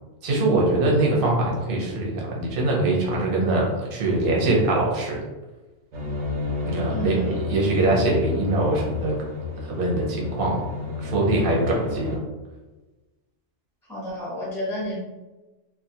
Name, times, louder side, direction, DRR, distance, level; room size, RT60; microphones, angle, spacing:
voice 1, 0.2-5.2 6.6-9.1 9.6-10.6 11.0-12.1, right 2 dB, 55° right, -2 dB, 0.8 m, -23 dB
sound 1, 5.9-12.2, left 3 dB, 85° right, 0.9 m, -31 dB
voice 2, 6.9-7.3 13.9-15.0, equal, 5° left, -7 dB, 0.4 m, -30 dB
2.4 x 2.2 x 2.7 m, 1.2 s
omnidirectional pair, 1.2 m